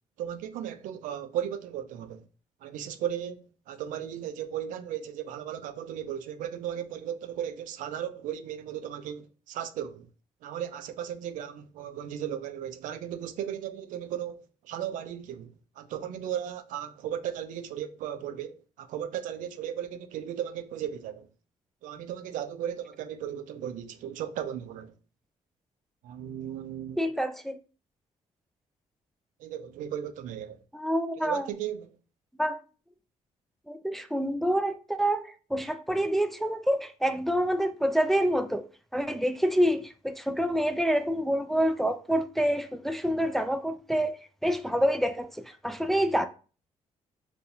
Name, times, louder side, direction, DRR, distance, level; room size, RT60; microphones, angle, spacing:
voice 1, 0.2-2.2 2.6-10.1 10.4-21.3 21.8-24.9 26.0-27.0 29.4-30.6 31.2-31.9, right 10 dB, 80° right, 0.4 m, -36 dB
voice 2, 27.0-27.6 30.7-31.5 32.4-32.6 33.7-38.7 38.9-46.3, equal, ahead, 0.3 m, -27 dB
4.1 x 2.2 x 2.6 m
cardioid pair, 85°, 13 cm